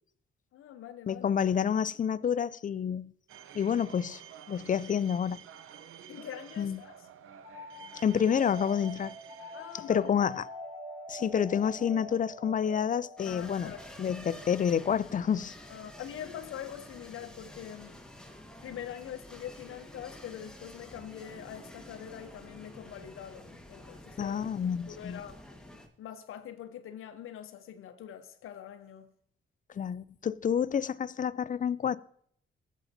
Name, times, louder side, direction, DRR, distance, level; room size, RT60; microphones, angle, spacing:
voice 1, 0.5-1.3 6.1-7.0 7.9-8.0 9.5-10.3 13.3-13.9 15.7-18.0 18.6-24.4 24.9-25.4 26.0-29.1, left 10 dB, 85° left, 0.8 m, -44 dB
voice 2, 1.1-3.1 3.5-4.2 4.5-5.4 6.6-6.8 8.0-9.2 9.9-10.4 11.1-13.7 14.0-15.5 24.2-25.2 29.8-32.0, left 8 dB, 40° left, 0.4 m, -29 dB
sound 1, 3.3-10.5, right 9 dB, 80° right, 0.7 m, -51 dB
sound 2, 7.4-16.8, left 1 dB, 35° right, 3.2 m, -46 dB
sound 3, 13.2-25.9, left 1 dB, 5° left, 1.5 m, -49 dB
15.5 x 7.2 x 2.7 m
cardioid pair, 70°, 21 cm